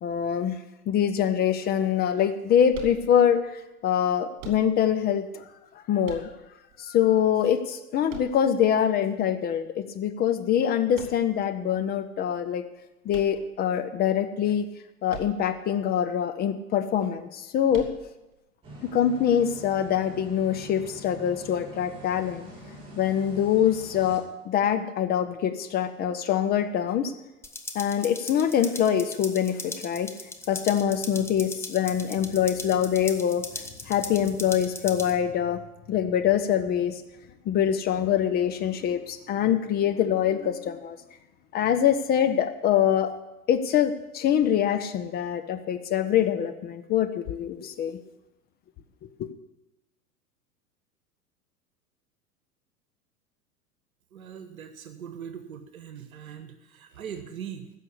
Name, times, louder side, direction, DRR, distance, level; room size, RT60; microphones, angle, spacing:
voice 1, 0.0-0.6 0.9-3.4 3.8-5.4 5.9-6.3 6.8-12.6 13.0-14.7 15.0-17.9 18.9-22.5 23.0-27.1 27.7-30.1 30.5-33.4 33.9-35.6 35.9-37.0 37.5-41.0 41.5-43.2 43.5-48.0 49.2-49.3, left 9 dB, 20° left, 8 dB, 0.7 m, -24 dB
sound 1, 2.7-3.5 4.4-5.1 6.0-6.8 8.1-8.9 10.9-11.5 13.1-14.0 15.1-15.7 15.9-16.0 17.7-18.3, right 6 dB, 40° right, 2.6 m, -44 dB
sound 2, 18.6-24.2, right 1 dB, 10° right, 5.5 m, -44 dB
sound 3, 27.4-35.1, left 2 dB, 5° left, 1.0 m, -39 dB
voice 2, 54.1-57.7, right 8 dB, 60° right, 10 dB, 1.3 m, -41 dB
15.0 x 6.5 x 8.4 m, 0.96 s
figure-of-eight pair, 90°, 47 cm